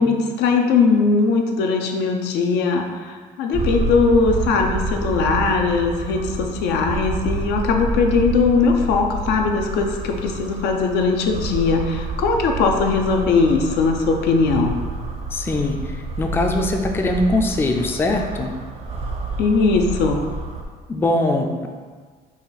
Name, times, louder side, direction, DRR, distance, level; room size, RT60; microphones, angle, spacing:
voice 1, 0.0-14.7 19.4-20.2, left 4 dB, 80° left, 3 dB, 0.5 m, -19 dB
sound 1, 3.5-20.6, right 2 dB, 35° right, 0.5 m, -29 dB
voice 2, 15.3-15.8 16.2-18.5 20.9-21.7, left 2 dB, 15° left, 3 dB, 0.3 m, -21 dB
4.2 x 2.3 x 3.9 m, 1.5 s
cardioid pair, 110°, 17 cm